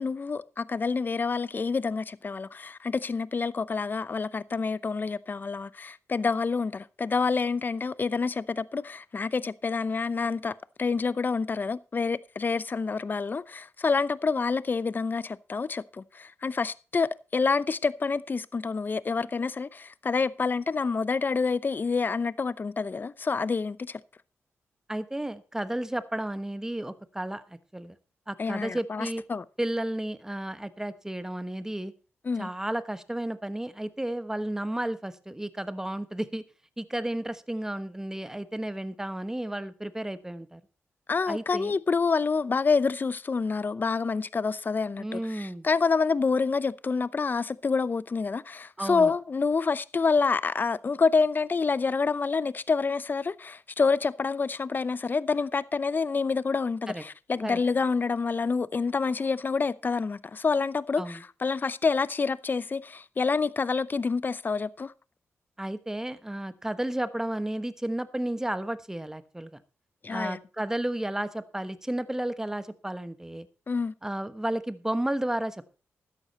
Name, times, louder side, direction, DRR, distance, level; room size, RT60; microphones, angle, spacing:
voice 1, 0.0-24.0 28.4-29.4 32.2-32.5 41.1-64.9 70.0-70.4 73.7-73.9, left 4 dB, 40° left, 0.6 m, -27 dB
voice 2, 24.9-27.4 27.7-27.9 28.3-29.2 29.6-31.9 32.4-36.4 36.8-40.6 41.3-41.7 45.0-45.7 48.8-49.1 56.9-57.0 57.4-57.6 61.0-61.2 65.6-69.6 70.1-73.5 74.0-75.7, right 1 dB, 10° right, 1.2 m, -32 dB
13.0 x 10.0 x 4.2 m
cardioid pair, 70°, 5 cm